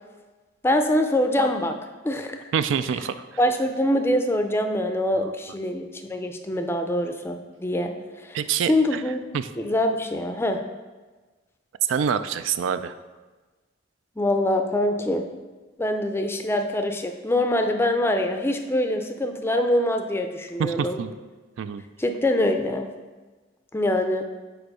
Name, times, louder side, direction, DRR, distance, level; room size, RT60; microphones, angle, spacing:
voice 1, 0.6-1.8 2.0-2.4 3.4-8.4 8.7-9.2 9.6-10.6 14.2-15.2 15.8-21.0 22.0-22.9 23.7-24.2, left 1 dB, 15° left, 5 dB, 0.4 m, -24 dB
voice 2, 2.5-3.1 5.1-5.3 8.3-9.0 9.3-9.5 11.9-12.9 20.6-21.1 21.6-21.8, right 7 dB, 80° right, 12 dB, 0.3 m, -26 dB
5.1 x 4.5 x 4.8 m, 1.3 s
head